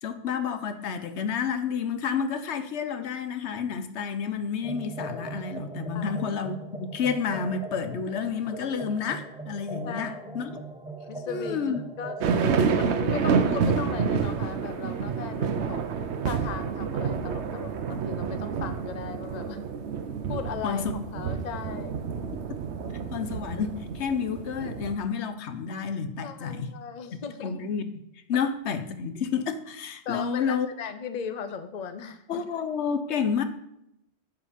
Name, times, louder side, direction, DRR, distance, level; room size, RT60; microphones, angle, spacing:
voice 1, 0.0-10.5 11.3-11.8 20.6-21.0 23.1-26.7 27.4-27.8 28.3-30.7 32.3-33.4, left 6 dB, 90° left, 10 dB, 1.1 m, -30 dB
sound 1, 4.6-12.3, right 2 dB, 5° right, 0.6 m, -40 dB
voice 2, 9.8-10.4 11.1-15.9 16.2-19.6 20.3-20.8 21.1-22.0 26.2-27.7 30.0-32.4, left 6 dB, 45° left, 10 dB, 0.7 m, -37 dB
sound 2, 12.2-24.9, right 6 dB, 80° right, 1.0 m, -28 dB
11.5 x 4.8 x 5.1 m, 0.79 s
omnidirectional pair, 1.1 m